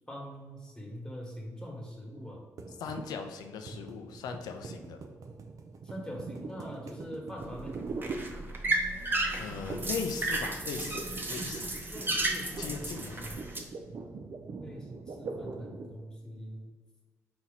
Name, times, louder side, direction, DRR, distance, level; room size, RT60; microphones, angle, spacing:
voice 1, 0.1-2.4 5.8-7.8 11.8-13.4 14.6-16.7, equal, 10° left, -1 dB, 1.4 m, -43 dB
sound 1, 2.6-8.9 9.7-10.1 10.3-16.0, right 4 dB, 55° right, 0.5 m, -42 dB
voice 2, 2.8-5.0 9.4-11.0 11.3-11.7 12.6-13.2, left 6 dB, 75° left, 6 dB, 0.5 m, -38 dB
sound 2, 7.4-13.6, right 2 dB, 30° right, 0.8 m, -33 dB
4.2 x 2.9 x 3.8 m, 1.4 s
supercardioid pair, 50°, 7 cm